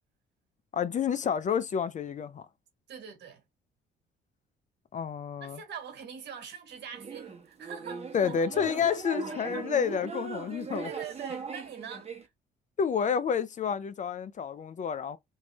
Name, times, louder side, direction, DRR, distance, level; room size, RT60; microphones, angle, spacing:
voice 1, 0.7-2.5 4.9-5.6 8.1-10.9 12.8-15.2, left 7 dB, 40° left, 0.5 m, -29 dB
voice 2, 2.9-3.4 5.4-8.4 9.5-9.6 10.8-12.1, right 7 dB, 65° right, 1.5 m, -43 dB
sound 1, 6.9-12.2, right 5 dB, 30° right, 1.1 m, -39 dB
3.1 x 2.6 x 3.3 m
supercardioid pair, 70°, 19 cm